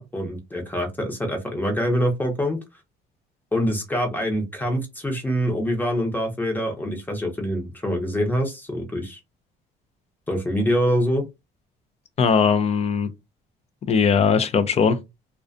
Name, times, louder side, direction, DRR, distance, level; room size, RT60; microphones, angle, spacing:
voice 1, 0.1-2.6 3.5-9.2 10.3-11.2, equal, 10° left, 0.8 m, -25 dB
voice 2, 12.2-13.1 13.9-15.0, left 6 dB, 40° left, 0.5 m, -19 dB
2.4 x 2.2 x 2.5 m
cardioid pair, 110°, 17 cm